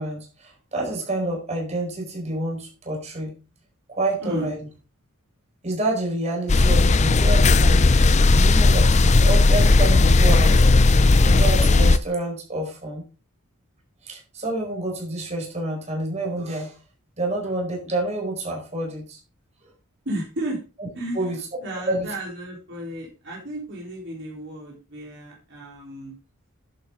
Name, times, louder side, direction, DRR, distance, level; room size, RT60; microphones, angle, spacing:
voice 1, 0.0-3.3 3.9-4.6 5.6-7.9 8.3-10.7 11.2-13.0 14.0-16.8 17.2-19.2 21.1-21.4 21.7-22.1, right 2 dB, 30° right, -1 dB, 4.5 m, -28 dB
voice 2, 4.2-4.5 20.1-20.6 20.9-21.3 21.6-26.1, right 1 dB, 55° right, -3 dB, 3.8 m, -33 dB
sound 1, 6.5-12.0, left 3 dB, 30° left, 0.5 m, -16 dB
11.0 x 8.0 x 3.8 m, 0.32 s
head